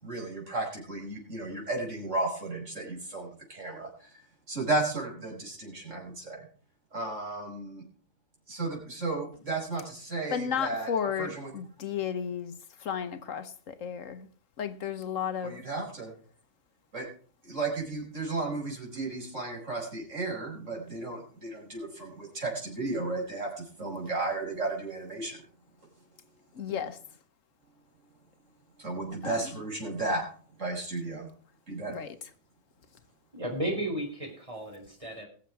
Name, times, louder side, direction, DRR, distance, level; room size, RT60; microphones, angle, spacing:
voice 1, 0.0-6.5 6.9-7.8 8.5-10.9 11.2-11.5 15.4-16.1 16.9-17.1 17.4-25.4 28.8-30.2 30.6-31.3 31.7-32.0, right 2 dB, 65° right, 5.7 m, -34 dB
voice 2, 10.3-12.5 12.8-14.3 14.6-15.6 26.5-27.0 29.2-29.5 31.9-32.1, left 8 dB, 75° left, 1.4 m, -33 dB
voice 3, 33.3-35.3, right 1 dB, 25° right, 4.6 m, -34 dB
20.5 x 7.2 x 4.6 m
omnidirectional pair, 1.4 m